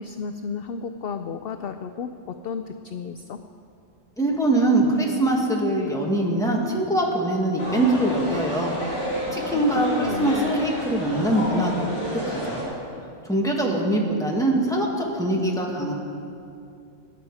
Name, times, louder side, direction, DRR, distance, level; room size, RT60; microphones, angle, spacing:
voice 1, 0.0-3.4 9.5-10.6, left 5 dB, 60° left, 8 dB, 0.6 m, -33 dB
voice 2, 4.2-8.7 9.3-11.9 12.3-12.6 13.3-15.9, right 1 dB, 5° left, -2 dB, 1.8 m, -23 dB
sound 1, 7.6-12.6, equal, 20° left, 4.6 m, -30 dB
21.5 x 9.9 x 4.8 m, 2.5 s
omnidirectional pair, 1.3 m